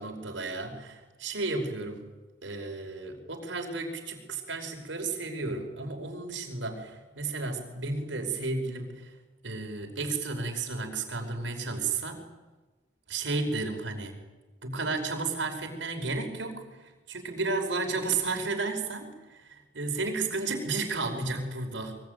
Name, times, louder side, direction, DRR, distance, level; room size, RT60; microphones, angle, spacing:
voice 1, 0.0-2.0 2.4-9.1 9.4-12.2 13.1-14.2 14.6-22.0, right 3 dB, 85° right, 3 dB, 5.1 m, -33 dB
24.0 x 23.5 x 9.4 m, 1.2 s
head